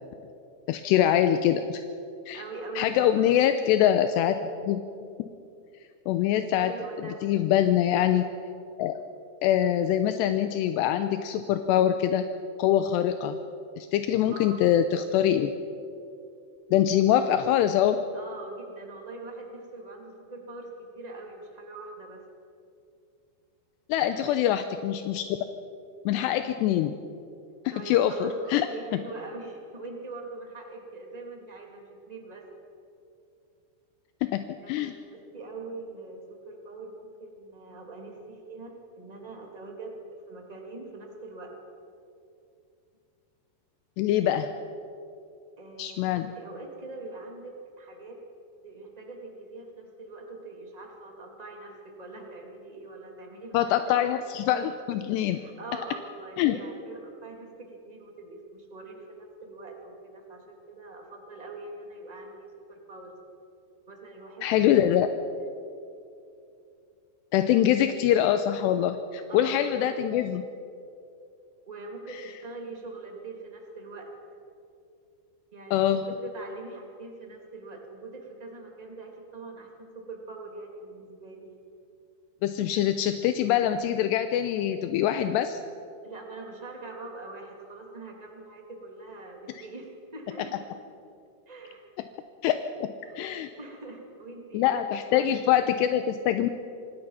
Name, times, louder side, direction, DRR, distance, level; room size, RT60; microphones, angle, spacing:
voice 1, 0.7-1.8 2.3-2.4 2.8-4.4 4.7-4.8 6.1-6.7 7.2-8.3 8.8-9.0 9.4-12.2 12.6-13.4 13.8-15.5 16.7-18.0 23.9-25.3 26.1-27.0 27.9-28.7 34.2-34.9 44.0-44.5 45.8-46.3 53.5-55.4 56.4-56.6 64.4-65.1 67.3-70.5 75.7-76.0 82.4-85.6 92.4-93.5 94.5-96.5, left 11 dB, 80° left, 9 dB, 2.6 m, -24 dB
voice 2, 2.3-3.3 6.6-7.2 14.1-14.7 18.1-22.2 24.0-24.4 27.7-32.5 34.6-41.6 45.6-48.2 48.5-53.7 54.3-54.6 55.2-63.2 63.9-64.8 67.3-67.9 69.3-69.9 71.6-74.1 75.5-81.5 86.0-90.6 91.4-91.9 93.0-94.7 95.1-95.4 95.9-96.1, right 3 dB, 15° right, 0 dB, 1.3 m, -43 dB
26.0 x 18.5 x 5.7 m, 2.5 s
omnidirectional pair, 5.4 m